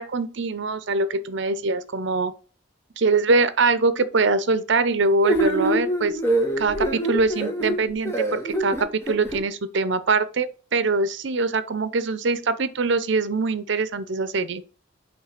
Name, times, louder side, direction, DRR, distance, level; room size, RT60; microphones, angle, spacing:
voice 1, 0.0-2.3 3.0-6.2 6.6-14.6, right 3 dB, 65° right, 0.7 m, -23 dB
sound 1, 5.2-9.4, right 1 dB, 15° left, 1.4 m, -25 dB
8.4 x 3.3 x 5.8 m
head